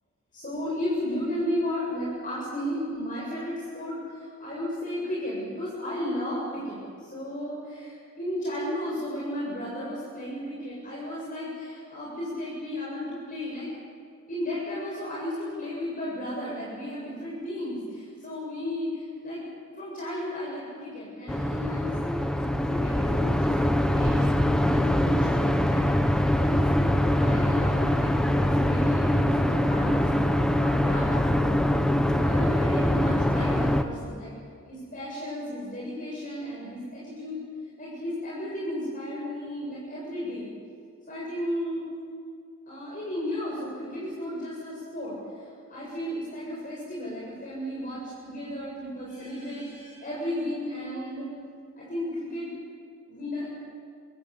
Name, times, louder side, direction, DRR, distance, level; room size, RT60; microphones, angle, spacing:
voice 1, 0.3-13.7 14.3-19.4 19.8-31.4 32.1-34.3 34.7-37.4 37.8-40.5 41.1-41.8 42.7-51.3 51.8-52.6 53.1-53.5, left 1 dB, 40° left, -6 dB, 7.6 m, -34 dB
sound 1, 21.3-33.8, left 1 dB, 5° left, 1.4 m, -23 dB
27.5 x 23.5 x 8.5 m, 2.3 s
head